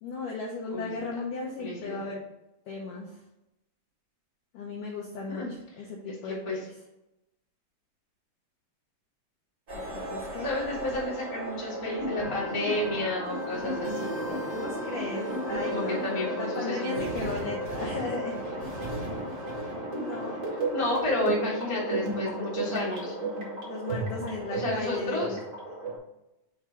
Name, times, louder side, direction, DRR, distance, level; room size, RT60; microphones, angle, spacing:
voice 1, 0.0-2.2 2.7-3.2 4.5-5.4 5.8-6.6 9.9-10.5 14.5-18.4 19.9-20.4 23.7-25.4, left 3 dB, 80° left, -2 dB, 1.9 m, -36 dB
voice 2, 0.7-1.2 1.6-2.1 5.3-5.5 5.8-6.6 10.4-14.5 15.6-17.1 20.5-23.1 24.5-25.4, left 2 dB, 15° left, -7 dB, 1.0 m, -32 dB
sound 1, 9.7-26.0, right 1 dB, 85° right, 0.7 m, -34 dB
6.4 x 3.6 x 4.4 m, 0.91 s
omnidirectional pair, 4.8 m